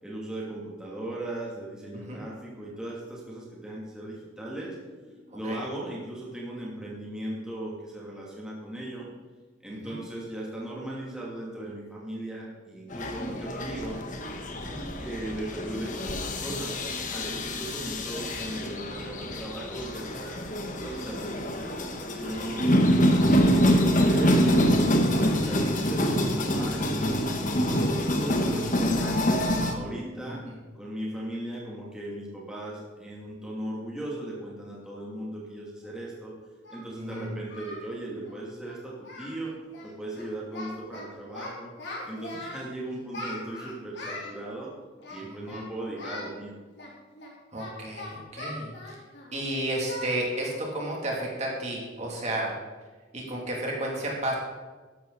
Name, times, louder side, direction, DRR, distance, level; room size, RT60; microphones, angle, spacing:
voice 1, 0.0-9.1 9.6-14.0 15.0-16.8 17.1-20.4 20.8-22.8 23.0-24.8 25.1-29.2 29.7-30.4 30.7-36.3 36.7-39.5 39.8-41.7 42.0-44.7 45.1-46.6, right 1 dB, 5° right, -5 dB, 2.7 m, -37 dB
sound 1, 12.9-29.7, equal, 45° left, 1.4 m, -26 dB
voice 2, 30.2-30.6 37.0-37.3 45.2-45.6 47.5-49.0 49.3-52.5 53.1-54.4, right 1 dB, 35° right, -2 dB, 2.8 m, -32 dB
Singing, 35.8-35.9 36.6-37.9 38.1-38.3 38.6-38.8 39.0-39.4 39.7-39.9 40.1-41.0 41.3-42.7 43.1-44.3 45.0-45.7 46.0-46.3 46.8-49.4 49.9-50.1 50.4-50.6 51.0-51.1 51.6-51.9, left 1 dB, 65° left, 3.7 m, -40 dB
13.5 x 11.5 x 4.1 m, 1.3 s
head